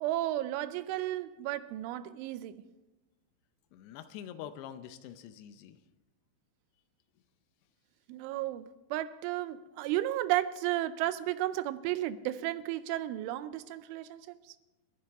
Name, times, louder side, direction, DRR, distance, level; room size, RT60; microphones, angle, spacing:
voice 1, 0.0-2.5 8.1-14.3, right 14 dB, 85° right, 3.0 m, -33 dB
voice 2, 3.7-5.8, left 10 dB, 85° left, 2.4 m, -45 dB
28.5 x 10.5 x 3.5 m
omnidirectional pair, 5.6 m